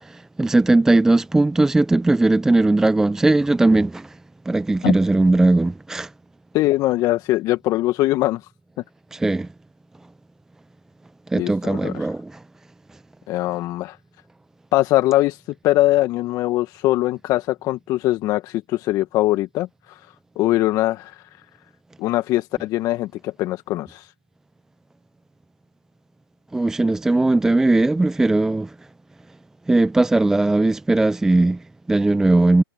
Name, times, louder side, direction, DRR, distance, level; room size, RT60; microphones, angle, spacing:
voice 1, 0.0-4.2 4.5-6.1 9.1-9.5 11.3-12.4 26.5-28.7 29.7-32.6, right 2 dB, 5° right, 0.7 m, -18 dB
voice 2, 6.5-8.4 11.3-12.1 13.3-14.0 14.7-20.0 20.4-21.2 22.0-24.1, left 16 dB, 25° left, 1.5 m, -21 dB
hypercardioid pair, 130°, 13 cm